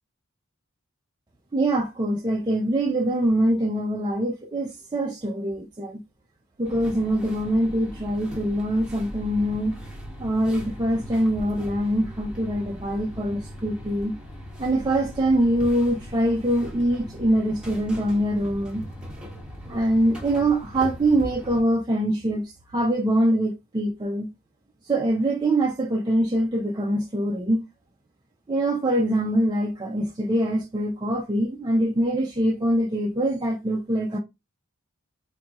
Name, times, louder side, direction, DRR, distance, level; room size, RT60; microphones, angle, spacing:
voice 1, 1.5-6.0 6.6-9.8 10.2-14.1 14.6-18.8 19.7-24.3 24.9-27.6 28.5-34.2, right 1 dB, 20° right, 0.4 m, -24 dB
sound 1, 6.6-21.6, equal, 5° right, 1.1 m, -39 dB
4.3 x 2.6 x 2.4 m
head